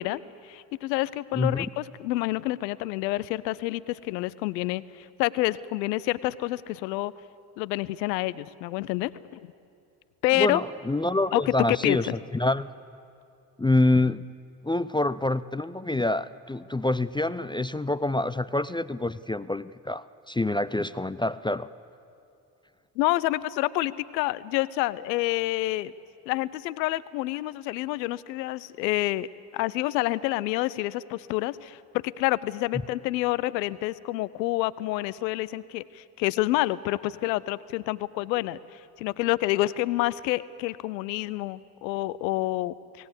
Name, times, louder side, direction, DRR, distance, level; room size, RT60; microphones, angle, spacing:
voice 1, 0.0-7.1 7.6-9.5 10.2-10.6 11.3-12.0 23.0-25.9 26.3-43.1, left 17 dB, 85° left, 18 dB, 0.6 m, -28 dB
voice 2, 10.3-12.7 13.6-14.3 14.6-21.7, left 2 dB, 10° left, 15 dB, 0.5 m, -26 dB
26.0 x 18.0 x 8.1 m, 2.6 s
hypercardioid pair, 40°, 50 cm